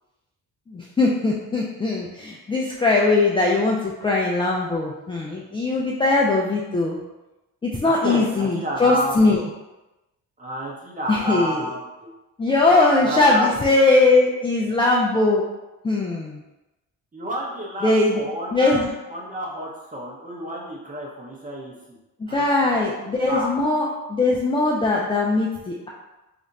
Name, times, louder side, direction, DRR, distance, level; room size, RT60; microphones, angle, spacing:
voice 1, 0.7-7.0 7.6-9.4 11.1-11.7 12.4-15.4 15.8-16.4 17.8-18.2 18.5-18.9 22.2-25.9, left 2 dB, 15° left, -3 dB, 0.3 m, -20 dB
voice 2, 7.8-9.5 10.4-12.1 12.5-12.7 13.0-13.5 17.1-22.0 22.3-22.8 23.2-23.5, right 1 dB, 25° right, -3 dB, 0.8 m, -30 dB
2.5 x 2.1 x 3.9 m, 1.0 s
cardioid pair, 100°, 35 cm